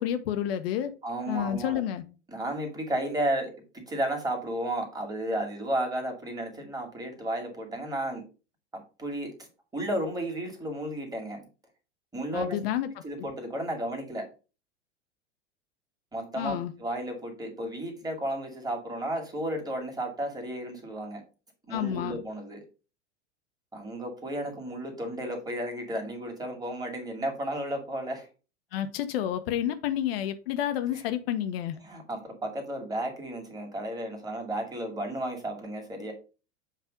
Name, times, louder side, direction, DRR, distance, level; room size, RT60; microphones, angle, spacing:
voice 1, 0.0-0.9 1.3-2.0 12.3-12.9 16.3-16.7 21.7-22.2 28.7-31.8, left 11 dB, 55° left, 1.0 m, -30 dB
voice 2, 1.0-1.8 2.3-8.2 8.7-9.3 9.7-11.4 12.1-12.6 13.0-14.3 16.1-21.2 21.7-22.6 23.7-28.3 31.8-36.1, right 1 dB, 10° right, 2.3 m, -33 dB
7.5 x 3.3 x 5.1 m
figure-of-eight pair, 85°, 36 cm